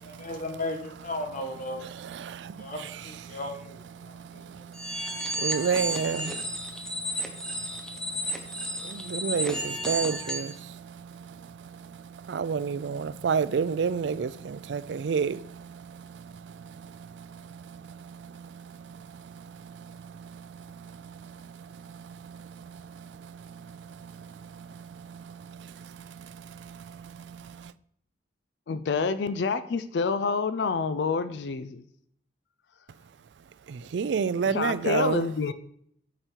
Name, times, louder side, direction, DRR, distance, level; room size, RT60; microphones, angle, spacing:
voice 1, 0.0-1.9 2.6-4.7, left 1 dB, 50° left, 1.4 m, -36 dB
voice 2, 2.2-2.5 5.4-6.3 8.9-10.5 12.3-15.4 33.9-35.2, right 6 dB, 80° right, 0.4 m, -28 dB
sound 1, 4.7-10.5, right 1 dB, 5° left, 1.0 m, -33 dB
voice 3, 28.7-31.8 34.4-35.5, left 4 dB, 75° left, 0.4 m, -28 dB
10.0 x 5.1 x 4.5 m
head